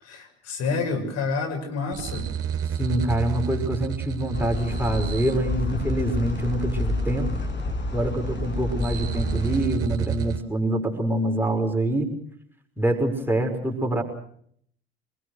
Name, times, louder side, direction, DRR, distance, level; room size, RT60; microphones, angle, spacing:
voice 1, 0.0-2.3, left 4 dB, 55° left, 4 dB, 6.6 m, -28 dB
sound 1, 1.9-10.4, right 8 dB, 50° right, 4.0 m, -31 dB
voice 2, 2.8-7.3 7.9-12.1 12.8-14.0, right 1 dB, 5° right, 2 dB, 5.5 m, -25 dB
sound 2, 4.3-9.6, left 2 dB, 35° left, 6.0 m, -29 dB
26.0 x 21.5 x 6.5 m, 0.64 s
hypercardioid pair, 60°, 31 cm